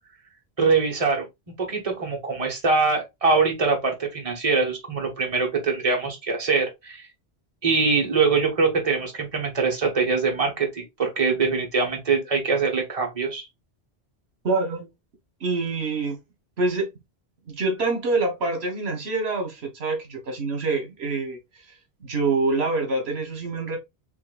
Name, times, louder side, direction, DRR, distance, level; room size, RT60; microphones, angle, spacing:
voice 1, 0.6-1.2 1.6-7.1 7.6-13.4, right 4 dB, 35° right, 1.4 m, -23 dB
voice 2, 14.4-14.9 15.4-16.2 16.6-16.9 17.5-21.4 22.0-23.8, right 3 dB, 80° right, 1.5 m, -25 dB
5.7 x 3.0 x 2.3 m
omnidirectional pair, 1.1 m